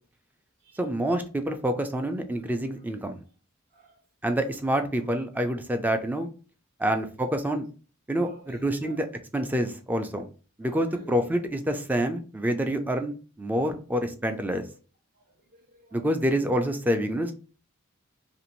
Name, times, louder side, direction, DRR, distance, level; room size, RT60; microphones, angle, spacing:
voice 1, 0.8-3.2 4.2-6.3 6.8-7.7 8.1-9.1 9.3-10.3 10.6-14.6 15.9-17.3, right 1 dB, 10° right, 6 dB, 0.3 m, -27 dB
voice 2, 3.7-4.0 5.0-5.2 6.8-7.0 8.2-9.0 10.6-11.3 14.6-14.7 15.1-16.1, right 3 dB, 45° right, 3 dB, 0.7 m, -52 dB
2.8 x 2.5 x 3.0 m, 0.36 s
head